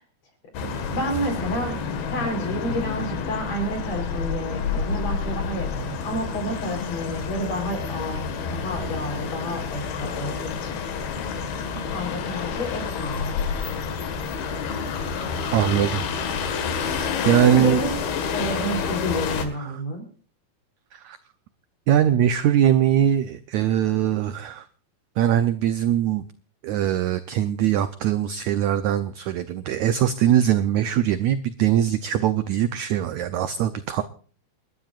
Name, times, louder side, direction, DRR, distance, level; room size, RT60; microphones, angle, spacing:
sound 1, 0.5-19.5, left 6 dB, 85° left, 3.7 m, -29 dB
voice 1, 0.6-1.8 2.1-10.8 11.7-13.3 17.5-18.0 18.3-20.0, equal, 45° left, 5 dB, 5.2 m, -30 dB
voice 2, 15.5-16.0 17.3-17.8 19.5-19.8 20.9-21.2 21.9-24.7 25.2-26.3 26.6-34.0, right 10 dB, 80° right, 11 dB, 1.7 m, -21 dB
29.5 x 12.5 x 2.5 m, 0.41 s
omnidirectional pair, 4.3 m